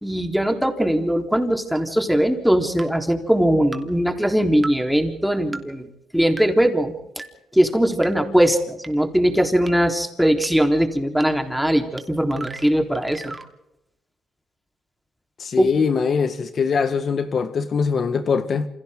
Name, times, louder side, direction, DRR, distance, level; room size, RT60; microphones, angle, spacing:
voice 1, 0.0-5.9 6.1-6.9 7.5-13.4 15.6-15.7, equal, ahead, 3.9 m, -20 dB
sound 1, 1.8-1.9 2.8-2.9 3.7-3.8 4.6-4.7 5.5-5.6 6.4-6.5 7.2-7.3 8.0-8.1 8.8-8.9 9.7-9.8 10.4-10.5 11.2-11.3 12.0-12.1 12.3-13.5, right 3 dB, 20° right, 2.9 m, -35 dB
voice 2, 15.4-18.7, left 5 dB, 50° left, 1.6 m, -22 dB
29.0 x 26.5 x 3.8 m
cardioid pair, 90°, 0 cm